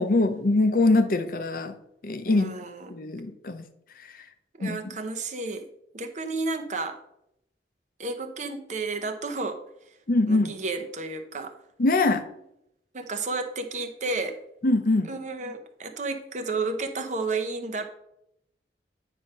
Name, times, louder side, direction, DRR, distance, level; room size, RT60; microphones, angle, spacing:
voice 1, 0.0-1.7 2.0-2.5 2.9-3.6 4.1-4.2 4.6-5.0 10.1-10.6 11.8-12.2 14.6-15.1, left 2 dB, 50° left, 9 dB, 0.6 m, -23 dB
voice 2, 2.3-2.9 4.5-5.6 5.9-7.0 8.0-10.0 10.3-11.5 12.9-14.4 15.0-17.8, right 3 dB, 40° right, 6 dB, 0.8 m, -32 dB
9.3 x 3.7 x 5.5 m, 0.79 s
head